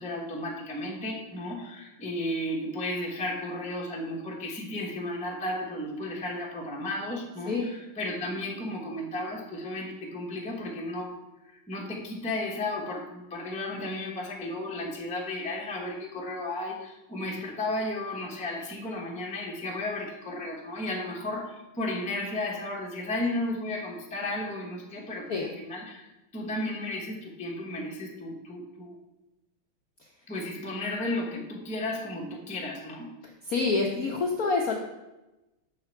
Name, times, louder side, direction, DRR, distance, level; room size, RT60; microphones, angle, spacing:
voice 1, 0.0-11.2 11.5-29.0 30.3-33.1, left 1 dB, 10° left, -2 dB, 0.5 m, -34 dB
voice 2, 33.4-34.7, left 4 dB, 65° left, 0 dB, 0.9 m, -27 dB
6.7 x 5.9 x 4.4 m, 1.0 s
omnidirectional pair, 2.4 m